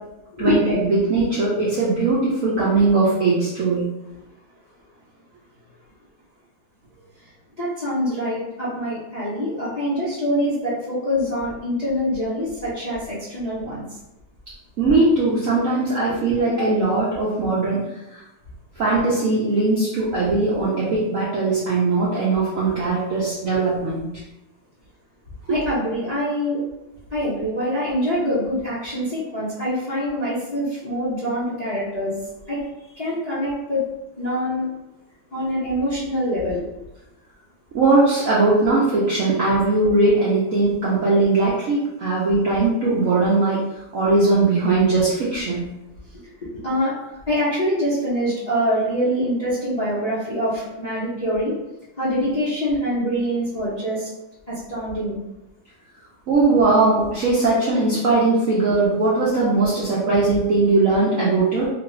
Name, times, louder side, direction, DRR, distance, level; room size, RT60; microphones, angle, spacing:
voice 1, 0.4-3.9 14.8-17.8 18.1-18.2 18.8-24.1 25.5-25.6 37.7-43.6 43.9-45.7 56.3-61.7, right 3 dB, 65° right, -7 dB, 0.8 m, -19 dB
voice 2, 7.6-13.8 25.5-26.6 27.1-32.1 32.5-32.6 32.9-33.8 34.2-34.7 35.3-36.6 46.5-46.9 47.3-51.5 52.0-54.1 54.5-55.2, equal, 80° left, -10 dB, 0.3 m, -24 dB
3.0 x 2.6 x 3.1 m, 0.98 s
omnidirectional pair, 2.1 m